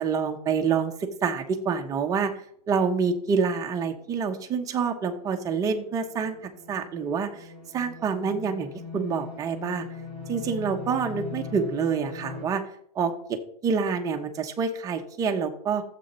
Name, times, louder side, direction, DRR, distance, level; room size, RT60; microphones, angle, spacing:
voice 1, 0.0-2.3 2.7-7.5 7.7-9.9 10.3-12.6 12.9-15.8, right 6 dB, 15° right, 3 dB, 1.1 m, -27 dB
sound 1, 4.0-12.5, left 4 dB, 50° left, 5.5 m, -41 dB
12.5 x 7.9 x 4.5 m, 0.67 s
supercardioid pair, 165°, 20 cm